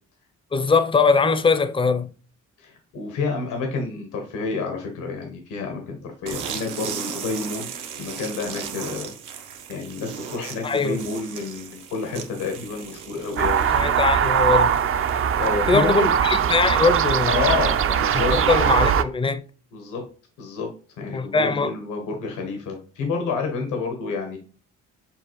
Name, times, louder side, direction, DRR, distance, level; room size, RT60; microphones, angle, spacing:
voice 1, 0.5-2.1 10.6-11.0 13.7-14.7 15.7-17.4 18.3-19.4 21.1-21.7, left 4 dB, 20° left, 0.4 m, -21 dB
voice 2, 2.6-7.7 8.0-9.4 9.7-13.7 15.4-16.1 17.3-18.3 19.7-20.0 20.4-20.7 21.0-24.4, left 4 dB, 90° left, 1.1 m, -29 dB
sound 1, 6.2-15.7, right 7 dB, 80° right, 0.8 m, -37 dB
sound 2, 13.4-19.0, right 8 dB, 45° right, 0.4 m, -21 dB
6.9 x 2.4 x 3.0 m
cardioid pair, 90°, 30 cm